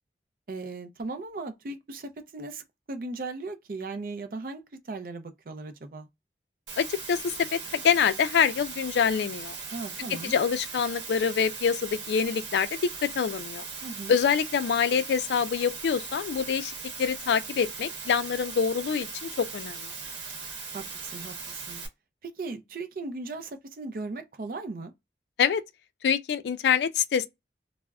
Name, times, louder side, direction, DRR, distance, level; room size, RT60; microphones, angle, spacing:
voice 1, 0.5-6.1 9.7-10.4 13.8-14.1 20.7-21.8 22.2-24.9, right 3 dB, 50° right, 0.4 m, -37 dB
Water, 6.7-21.9, right 5 dB, 90° right, 0.8 m, -39 dB
voice 2, 6.8-9.6 10.2-13.6 14.1-16.7 17.0-19.8 25.4-25.6 26.0-27.3, left 7 dB, 75° left, 0.3 m, -25 dB
2.3 x 2.0 x 3.3 m
head